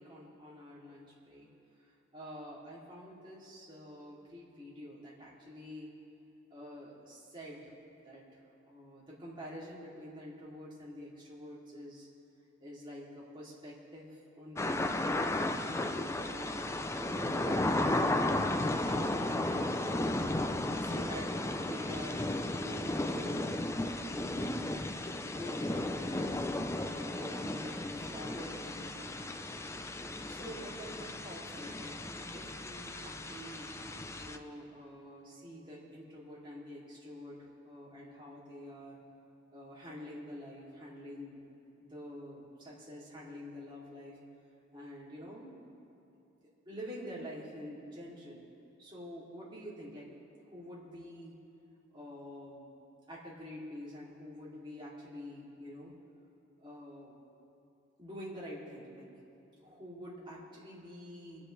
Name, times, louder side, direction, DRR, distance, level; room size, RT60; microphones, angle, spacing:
voice 1, 0.0-1.5 2.1-5.9 6.5-7.7 8.0-8.2 8.7-12.1 12.6-14.1 14.4-15.0 15.3-16.5 17.0-18.0 18.6-20.3 20.8-23.7 24.0-24.3 25.2-26.5 26.9-29.2 30.3-32.0 32.3-33.7 34.2-39.0 39.5-41.4 41.8-44.2 44.7-45.5 46.7-48.4 48.8-50.1 50.5-51.4 51.9-52.7 53.1-55.9 56.6-57.1 58.0-59.1 59.6-61.5, equal, 25° right, -7 dB, 2.9 m, -47 dB
sound 1, 14.6-34.4, left 1 dB, 15° left, 0.4 m, -34 dB
29.5 x 10.0 x 3.3 m, 2.7 s
head